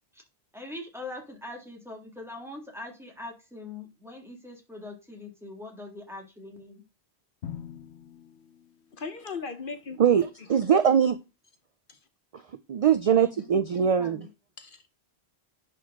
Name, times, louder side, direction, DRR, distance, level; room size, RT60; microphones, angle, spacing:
voice 1, 0.5-6.8 13.2-14.3, left 2 dB, ahead, 1.8 m, -42 dB
Drum, 7.4-9.4, left 9 dB, 85° left, 1.1 m, -44 dB
voice 2, 8.9-10.6 11.9-12.0 14.6-14.9, left 4 dB, 55° left, 1.0 m, -39 dB
voice 3, 10.0-11.2 12.7-14.3, right 8 dB, 60° right, 0.3 m, -22 dB
10.5 x 4.1 x 3.6 m
omnidirectional pair, 1.1 m